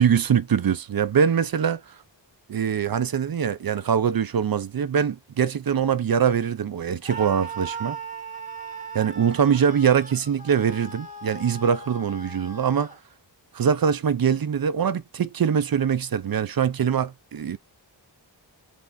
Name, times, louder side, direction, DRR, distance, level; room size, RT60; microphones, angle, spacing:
voice 1, 0.0-1.8 2.5-8.0 8.9-12.9 13.5-17.6, right 7 dB, 55° right, 0.6 m, -23 dB
Screaming, 7.0-13.0, right 4 dB, 15° right, 2.1 m, -38 dB
3.6 x 3.4 x 4.1 m
wide cardioid pair, 100°, 44 cm